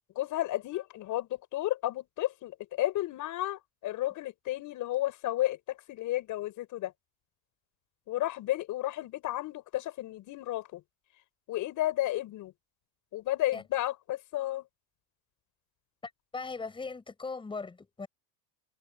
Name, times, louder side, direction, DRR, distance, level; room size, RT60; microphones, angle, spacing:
voice 1, 0.1-6.9 8.1-10.8 11.5-12.5 13.1-14.6, left 15 dB, 40° left, 6.7 m, -32 dB
voice 2, 16.0-18.1, left 4 dB, 10° left, 5.9 m, -39 dB
supercardioid pair, 160°, 47 cm